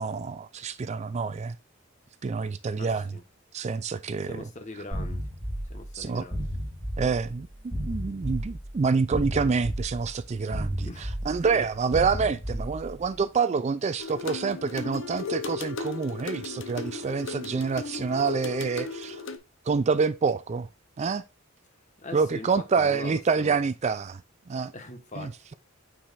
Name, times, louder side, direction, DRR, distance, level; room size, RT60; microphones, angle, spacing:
voice 1, 0.0-1.6 2.2-3.1 3.5-4.4 5.9-6.2 7.0-19.2 19.7-20.7 21.0-21.2 22.1-24.2 24.5-24.7 25.2-25.5, right 5 dB, 35° right, 0.3 m, -27 dB
voice 2, 2.8-3.2 4.2-5.2 5.7-6.5 10.8-11.1 11.4-11.6 22.0-23.6 24.7-25.3, left 2 dB, 35° left, 1.4 m, -41 dB
sound 1, 4.9-13.2, equal, 10° left, 3.8 m, -34 dB
sound 2, 14.0-19.4, left 4 dB, 65° left, 0.8 m, -36 dB
8.8 x 4.8 x 2.5 m
head